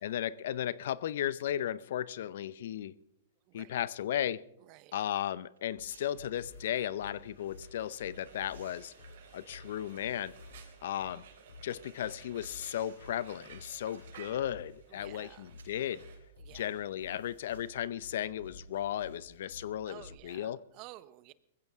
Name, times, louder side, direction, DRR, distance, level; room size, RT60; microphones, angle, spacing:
voice 1, 0.0-2.9 3.5-4.4 4.9-8.9 9.3-10.3 10.8-11.2 11.6-16.0 16.5-20.6, left 11 dB, 70° left, 18 dB, 0.6 m, -35 dB
voice 2, 3.5-3.8 4.6-5.0 14.9-15.5 16.4-16.8 19.8-21.3, right 17 dB, 40° right, 17 dB, 0.8 m, -53 dB
sound 1, 5.1-5.3 5.5-6.1 6.9-7.7 8.2-10.5 11.0-12.1 12.6-13.1 13.5-14.8 15.5-15.9 16.5-16.7 17.3-17.7 18.4-18.6 19.0-19.8 20.1-20.2, right 5 dB, 90° right, 6.6 m, -67 dB
sound 2, 5.8-20.2, left 1 dB, 90° left, 7.2 m, -53 dB
Frying (food), 7.0-16.2, right 7 dB, 65° right, 3.4 m, -56 dB
20.5 x 15.5 x 3.6 m, 0.80 s
hypercardioid pair, 130°, 0 cm